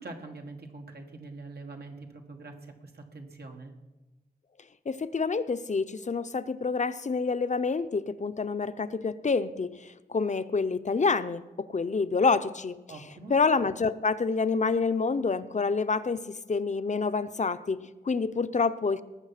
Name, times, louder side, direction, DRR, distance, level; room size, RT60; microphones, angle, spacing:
voice 1, 0.0-3.7 12.9-13.4, right 3 dB, 90° right, 3 dB, 1.6 m, -44 dB
voice 2, 4.9-12.8 13.3-19.0, left 4 dB, 50° left, 12 dB, 0.5 m, -28 dB
19.0 x 7.1 x 5.8 m, 1.1 s
wide cardioid pair, 90°, 16 cm